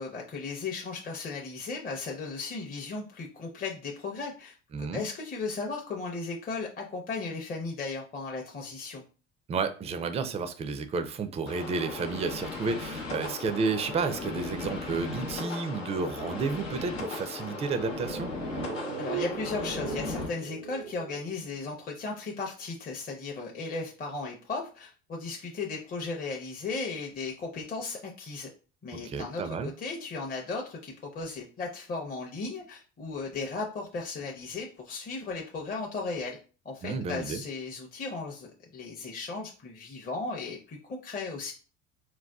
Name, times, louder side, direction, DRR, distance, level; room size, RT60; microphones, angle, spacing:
voice 1, 0.0-9.0 13.2-13.3 19.0-28.5 28.8-36.4 36.6-41.5, left 4 dB, 25° left, 0.6 m, -36 dB
voice 2, 4.7-5.0 9.5-18.3 28.9-29.7 36.8-37.4, right 4 dB, 20° right, 0.4 m, -31 dB
sound 1, 11.5-20.3, left 3 dB, 85° left, 0.8 m, -37 dB
sound 2, 17.5-22.0 22.3-22.4, right 8 dB, 90° right, 0.6 m, -39 dB
4.0 x 2.2 x 2.3 m
hypercardioid pair, 65°, 36 cm